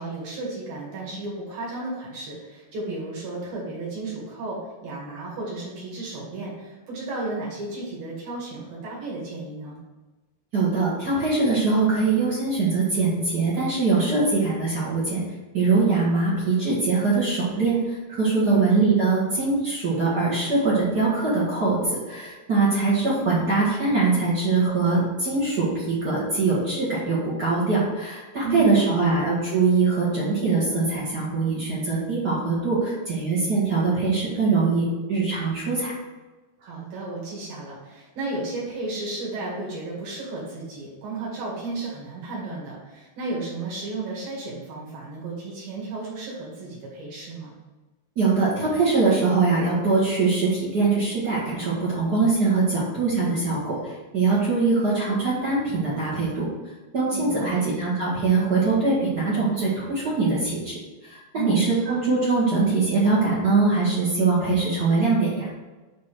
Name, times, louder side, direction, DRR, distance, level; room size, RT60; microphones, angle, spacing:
voice 1, 0.0-9.8 18.4-18.7 28.4-29.2 36.6-47.5 57.1-57.6 61.3-62.0, right 3 dB, 55° right, -5 dB, 3.4 m, -33 dB
voice 2, 10.5-15.2 15.5-35.9 48.1-56.5 56.9-61.2 61.4-65.5, right 3 dB, 70° right, -8 dB, 0.9 m, -22 dB
7.5 x 4.2 x 6.2 m, 1.2 s
omnidirectional pair, 5.3 m